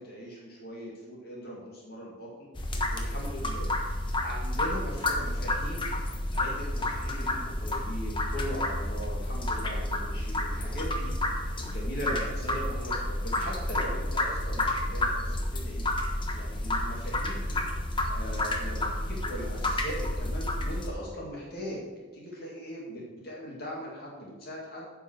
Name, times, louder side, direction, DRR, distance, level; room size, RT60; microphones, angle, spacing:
voice 1, 0.0-2.5 2.9-5.9 6.3-15.9 16.3-17.6 18.1-24.9, equal, 55° left, -3 dB, 2.3 m, -40 dB
sound 1, 2.6-20.9, left 1 dB, 25° left, 1.2 m, -30 dB
9.6 x 5.8 x 6.3 m, 1.4 s
head